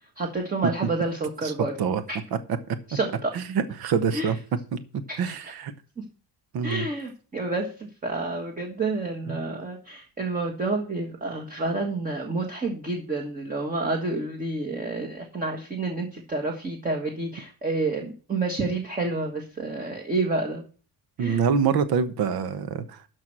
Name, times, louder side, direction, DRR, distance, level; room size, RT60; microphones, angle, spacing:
voice 1, 0.2-1.7 2.1-2.2 2.9-3.3 4.1-4.3 5.1-5.5 6.0-6.1 6.6-20.6 21.2-21.4, right 3 dB, 20° right, 1.5 m, -29 dB
voice 2, 3.3-4.4 4.7-4.8 5.2-5.7 6.5-6.9 9.3-9.4 21.2-23.0, right 6 dB, 60° right, 1.1 m, -25 dB
13.0 x 4.6 x 7.5 m
cardioid pair, 165°, 41 cm